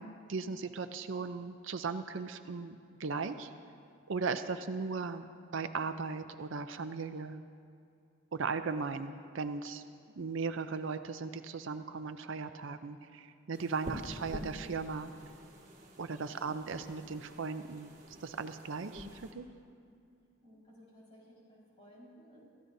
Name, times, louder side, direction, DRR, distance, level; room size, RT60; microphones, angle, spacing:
voice 1, 0.0-3.5 4.1-5.2 5.5-7.4 8.3-9.8 10.2-15.1 16.0-19.5, right 4 dB, 60° right, 9 dB, 0.5 m, -37 dB
sound 1, 13.5-19.3, equal, 35° right, 1.8 m, -47 dB
voice 2, 20.4-22.4, equal, 30° left, -6 dB, 4.7 m, -57 dB
26.5 x 14.5 x 2.7 m, 2.4 s
head